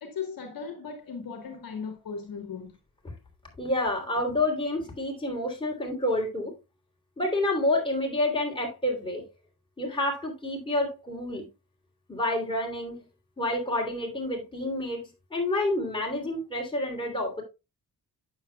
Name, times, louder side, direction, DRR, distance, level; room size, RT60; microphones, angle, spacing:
voice 1, 0.0-2.8, left 6 dB, 65° left, 1.4 m, -37 dB
voice 2, 3.6-6.5 7.2-9.2 9.8-11.4 12.1-13.0 13.4-15.0 15.3-17.4, left 1 dB, 15° left, 3.0 m, -28 dB
9.0 x 7.0 x 2.3 m
cardioid pair, 75°, 37 cm